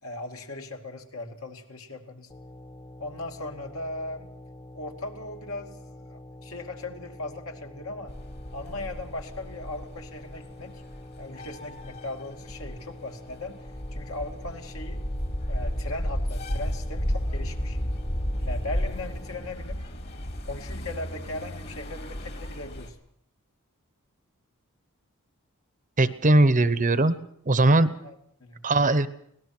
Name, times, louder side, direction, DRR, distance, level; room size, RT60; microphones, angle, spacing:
voice 1, 0.0-2.3 3.0-4.3 4.7-8.1 8.5-10.8 11.2-13.6 13.9-15.0 15.5-17.8 18.4-19.8 20.5-23.0 28.0-28.6, left 2 dB, 70° left, 3 dB, 2.5 m, -38 dB
sound 1, 2.3-19.5, left 1 dB, 25° left, 1.5 m, -46 dB
sound 2, 8.1-22.9, equal, 50° left, 2.7 m, -33 dB
voice 2, 26.0-27.2 27.5-27.9 28.6-29.1, right 2 dB, 35° right, 14 dB, 0.9 m, -19 dB
24.5 x 18.5 x 6.1 m, 0.70 s
head